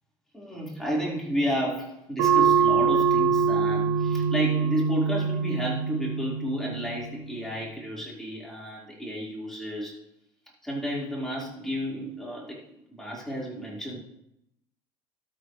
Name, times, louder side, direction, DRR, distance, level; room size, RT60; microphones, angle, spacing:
voice 1, 0.3-10.0 10.6-12.6 13.0-14.0, equal, 5° left, -5 dB, 4.3 m, -32 dB
sound 1, 2.2-7.3, right 5 dB, 85° right, 1.5 m, -24 dB
13.0 x 8.4 x 3.2 m, 0.81 s
supercardioid pair, 95°, 12 cm